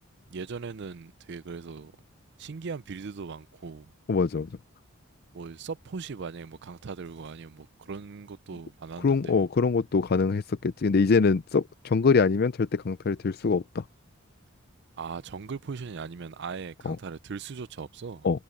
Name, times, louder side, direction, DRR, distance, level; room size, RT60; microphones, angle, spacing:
voice 1, 0.3-1.9 2.4-3.9 5.3-9.3 15.0-18.3, right 5 dB, 60° right, 0.5 m, -39 dB
voice 2, 4.1-4.5 9.0-13.8 16.8-17.0 18.2-18.4, left 4 dB, 50° left, 0.4 m, -24 dB
head